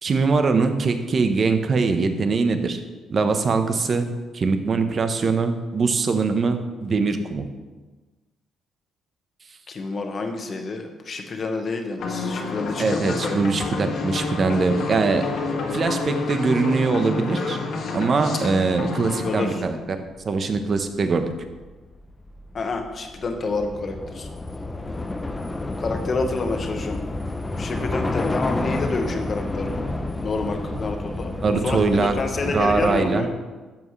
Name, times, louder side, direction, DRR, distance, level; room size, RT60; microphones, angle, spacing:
voice 1, 0.0-2.8 3.1-4.1 4.3-7.5 12.8-15.2 15.7-17.6 17.9-20.0 20.2-21.2 31.4-32.1 32.4-33.3, right 4 dB, 45° right, 7 dB, 1.0 m, -22 dB
voice 2, 9.7-13.7 19.2-19.6 22.5-24.3 25.8-27.0 27.6-29.9 30.2-33.3, left 3 dB, 45° left, 4 dB, 1.3 m, -28 dB
sound 1, 12.0-19.5, left 3 dB, 70° left, 1.7 m, -28 dB
Train / Subway metro underground, 20.1-33.1, left 2 dB, 20° left, 0.7 m, -30 dB
12.0 x 7.4 x 3.3 m, 1.3 s
cardioid pair, 90°, 0 cm